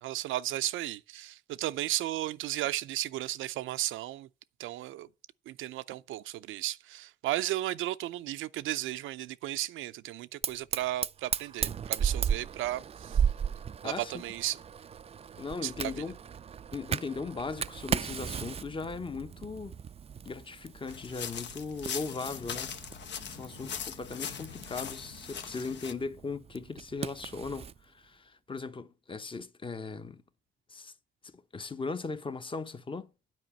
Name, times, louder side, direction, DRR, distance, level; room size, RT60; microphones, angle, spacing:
voice 1, 0.0-4.3 4.6-5.1 5.5-13.2 13.8-14.6 15.6-15.9, right 15 dB, 85° right, 0.6 m, -34 dB
Fire, 10.4-27.8, right 7 dB, 30° right, 0.4 m, -36 dB
voice 2, 13.8-14.2 15.4-16.2 16.7-19.7 20.2-22.7 23.3-30.2 30.7-30.9 31.2-33.1, left 4 dB, 25° left, 1.0 m, -38 dB
sound 1, 20.9-25.9, left 7 dB, 65° left, 1.1 m, -40 dB
9.3 x 5.0 x 7.2 m
cardioid pair, 90°, 20 cm